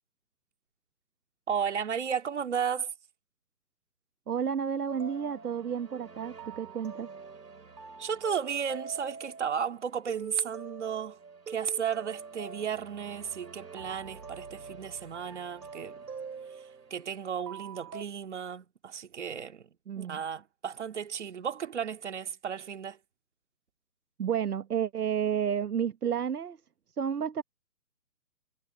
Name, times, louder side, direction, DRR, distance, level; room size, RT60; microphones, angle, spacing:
voice 1, 1.5-2.9 8.0-11.2 11.5-16.0 16.9-19.7 20.0-23.0, right 7 dB, 45° right, 2.3 m, -34 dB
voice 2, 4.3-7.1 19.9-20.2 24.2-26.6 27.0-27.4, right 8 dB, 75° right, 1.2 m, -31 dB
sound 1, 4.9-18.0, right 5 dB, 90° right, 4.4 m, -45 dB
hypercardioid pair, 165°, 47 cm